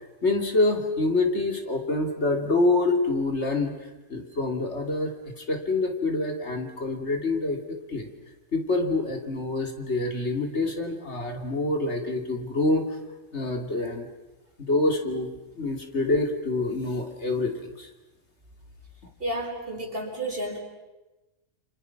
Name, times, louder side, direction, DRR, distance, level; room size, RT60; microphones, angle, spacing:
voice 1, 0.2-3.7 4.1-7.6 7.9-8.1 8.5-13.0 13.3-14.1 14.6-17.9, left 2 dB, 60° left, 4 dB, 2.9 m, -26 dB
voice 2, 19.2-20.6, right 1 dB, 45° right, 1 dB, 5.1 m, -31 dB
29.0 x 27.0 x 5.9 m, 1.1 s
omnidirectional pair, 1.3 m